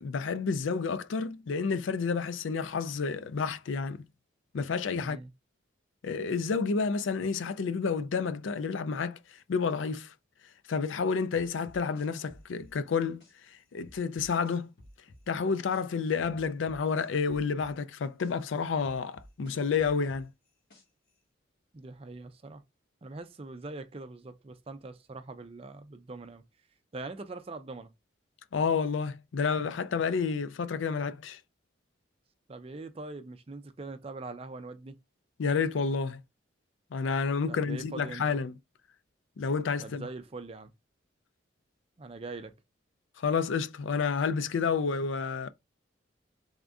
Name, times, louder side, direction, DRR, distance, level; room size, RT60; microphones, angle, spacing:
voice 1, 0.0-4.0 4.5-5.2 6.0-9.2 9.5-10.1 10.7-13.2 13.7-14.7 15.3-20.3 28.5-31.4 35.4-36.2 36.9-38.5 39.4-40.0 43.2-45.5, left 5 dB, 75° left, 0.4 m, -30 dB
voice 2, 5.0-5.3 21.7-22.6 23.0-26.4 26.9-27.9 32.5-35.0 37.5-38.2 39.8-40.7 42.0-42.5, right 3 dB, 30° right, 0.4 m, -42 dB
sound 1, 11.3-13.3 13.8-15.8 16.2-18.3 18.8-21.1, left 1 dB, 60° left, 1.5 m, -54 dB
3.5 x 2.6 x 3.4 m
head